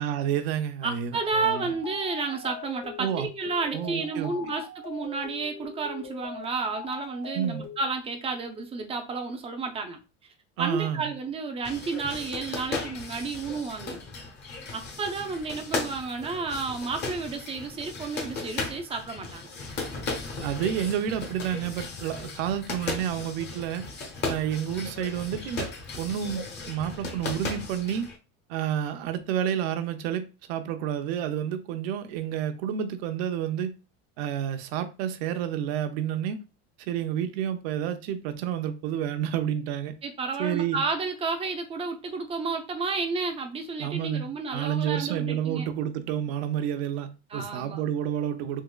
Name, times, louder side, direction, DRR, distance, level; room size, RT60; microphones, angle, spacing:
voice 1, 0.0-1.7 3.0-3.3 3.7-4.3 7.3-7.6 10.6-11.1 20.4-23.8 24.3-25.7 26.0-28.1 28.5-33.7 34.2-36.4 36.8-39.9 40.4-40.8 43.8-48.6, right 9 dB, 80° right, 0.6 m, -30 dB
voice 2, 0.8-10.0 10.6-14.0 14.7-19.5 40.0-45.7 47.3-47.8, right 4 dB, 20° right, 0.5 m, -31 dB
sound 1, 1.3-7.8, left 6 dB, 70° left, 1.1 m, -41 dB
sound 2, 11.6-28.2, left 3 dB, 35° left, 0.8 m, -36 dB
3.6 x 2.9 x 2.3 m
cardioid pair, 145°, 30 cm